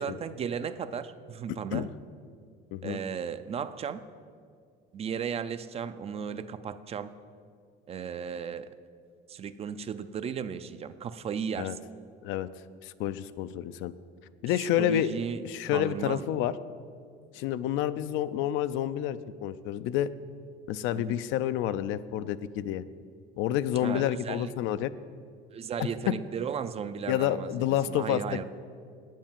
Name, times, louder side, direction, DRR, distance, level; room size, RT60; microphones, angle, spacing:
voice 1, 0.0-1.9 2.8-4.0 4.9-7.1 7.9-8.7 9.3-11.8 14.8-15.4 15.7-16.4 20.9-21.2 23.8-24.5 25.5-27.5 27.9-28.4, right 7 dB, 30° right, 13 dB, 0.4 m, -35 dB
voice 2, 12.8-13.9 14.4-15.1 15.4-16.5 17.3-20.1 20.7-22.8 23.4-24.9 25.8-26.1 27.1-28.4, left 11 dB, 70° left, 14 dB, 0.4 m, -29 dB
8.6 x 7.4 x 7.3 m, 2.2 s
cardioid pair, 125°, 21 cm